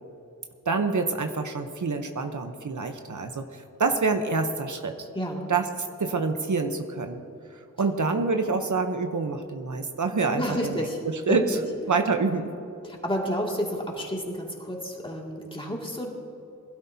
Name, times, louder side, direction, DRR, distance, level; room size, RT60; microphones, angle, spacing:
voice 1, 0.7-5.1 5.5-5.7 6.0-7.2 7.8-10.4 10.7-10.9 11.3-11.6 11.9-12.5, right 4 dB, 65° right, 6 dB, 0.9 m, -26 dB
voice 2, 5.1-5.5 10.3-11.0 11.3-11.6 12.8-16.2, equal, 15° left, -2 dB, 2.3 m, -30 dB
21.5 x 12.5 x 2.8 m, 2.6 s
wide cardioid pair, 90°, 32 cm